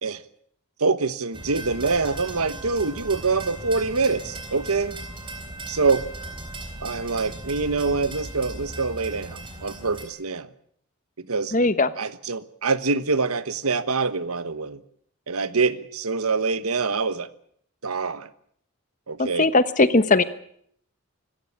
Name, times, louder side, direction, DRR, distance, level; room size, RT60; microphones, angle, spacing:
voice 1, 0.8-4.9 5.7-6.1 6.8-10.5 11.2-11.5 12.0-14.8 15.3-17.3 17.8-18.3 19.1-19.5, right 4 dB, 90° right, 14 dB, 1.2 m, -25 dB
sound 1, 1.3-10.0, right 2 dB, 25° right, 3.9 m, -37 dB
voice 2, 11.5-11.9 19.2-20.2, left 3 dB, 35° left, 13 dB, 1.1 m, -19 dB
25.5 x 14.5 x 8.6 m, 0.67 s
head